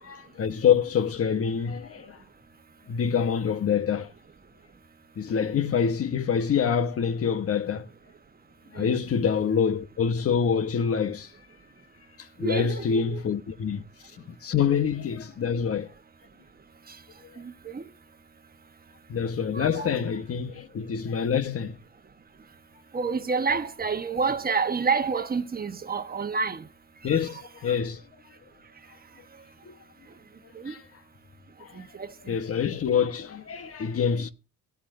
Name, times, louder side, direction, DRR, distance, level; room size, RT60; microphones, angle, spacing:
voice 1, 0.0-2.2 2.9-4.1 5.2-7.9 8.7-11.3 12.2-13.8 14.2-15.9 19.1-21.8 27.0-28.0 29.6-29.8 30.6-30.8 31.6-31.8 32.3-34.3, left 7 dB, 50° left, 1.2 m, -26 dB
voice 2, 12.4-13.2 17.4-17.8 19.5-19.9 22.9-26.6 27.1-27.2 27.7-27.8 30.5-30.7 31.8-32.4, right 5 dB, 30° right, 1.2 m, -29 dB
16.5 x 8.4 x 2.6 m
cardioid pair, 90°, 30 cm